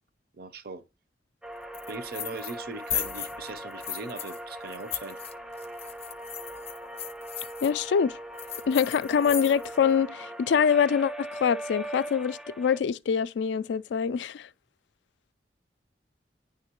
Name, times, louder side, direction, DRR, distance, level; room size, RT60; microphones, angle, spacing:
voice 1, 0.3-0.8 1.9-5.2, right 3 dB, 55° right, 0.6 m, -40 dB
sound 1, 1.4-12.8, right 1 dB, 5° right, 0.3 m, -40 dB
sound 2, 1.7-2.6 2.9-4.4 4.7-7.7 8.4-9.8, left 9 dB, 35° left, 0.6 m, -36 dB
voice 2, 7.6-8.2 8.7-14.5, left 7 dB, 75° left, 0.3 m, -25 dB
9.5 x 3.5 x 3.0 m
head